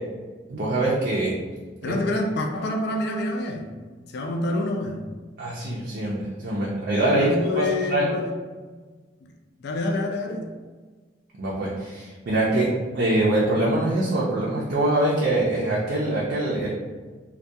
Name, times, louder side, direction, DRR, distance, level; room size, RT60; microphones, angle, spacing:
voice 1, 0.5-1.4 1.8-1.9 5.4-8.1 11.4-16.7, right 1 dB, 60° right, -5 dB, 0.4 m, -24 dB
voice 2, 1.8-3.7 4.1-5.0 6.6-6.7 7.1-8.3 9.6-10.5, left 2 dB, 65° left, 2 dB, 0.4 m, -27 dB
2.3 x 2.2 x 2.6 m, 1.4 s
head